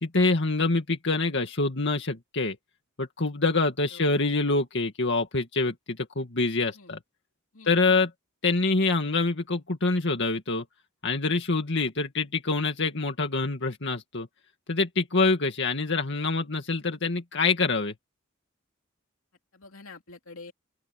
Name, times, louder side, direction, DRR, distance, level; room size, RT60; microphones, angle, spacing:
voice 1, 0.0-2.6 3.0-7.0 7.7-8.1 8.4-10.6 11.0-14.3 14.7-17.9, left 3 dB, 60° left, 2.2 m, -26 dB
voice 2, 3.9-4.2 6.7-6.9 7.5-8.1 19.5-20.5, left 3 dB, 80° left, 3.0 m, -47 dB
open air
head